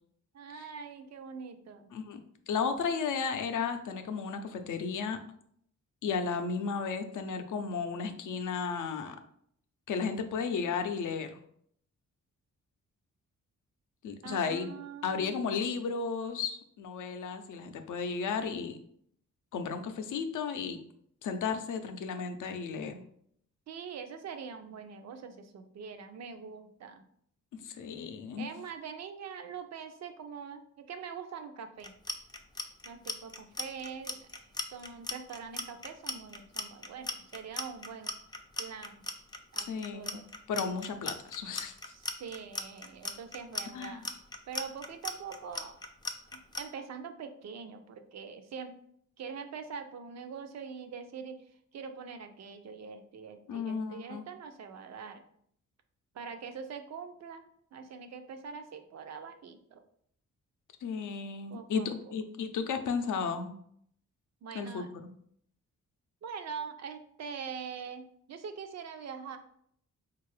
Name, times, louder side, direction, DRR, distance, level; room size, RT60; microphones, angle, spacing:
voice 1, 0.3-1.9 14.2-15.4 23.7-27.0 28.4-32.0 32.8-38.1 38.6-39.0 39.5-40.3 41.9-44.1 44.5-45.8 46.6-48.7 49.2-51.4 51.7-55.2 56.1-59.8 61.5-62.1 64.4-64.9 66.2-69.4, right 6 dB, 60° right, 8 dB, 0.5 m, -43 dB
voice 2, 2.5-5.2 6.0-9.2 9.9-11.4 14.0-14.7 15.0-18.8 19.5-20.8 21.2-23.0 27.6-28.5 39.6-40.2 40.5-41.7 43.7-44.0 53.5-54.2 60.8-63.6 64.5-64.9, left 5 dB, 75° left, 7 dB, 0.5 m, -34 dB
Clock, 31.8-46.6, left 3 dB, 15° left, 0.3 m, -37 dB
3.7 x 2.4 x 3.2 m, 0.66 s
cardioid pair, 105°, 31 cm